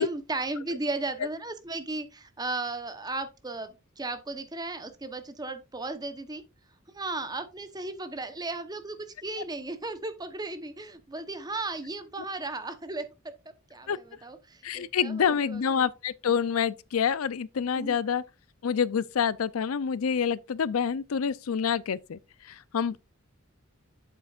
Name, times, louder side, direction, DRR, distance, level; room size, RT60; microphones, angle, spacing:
voice 1, 0.0-6.4 6.9-15.6 17.7-18.0, right 2 dB, 20° right, 0.9 m, -35 dB
voice 2, 14.6-18.2 18.6-22.2 22.4-23.0, left 7 dB, 85° left, 0.5 m, -27 dB
8.2 x 7.7 x 2.4 m
head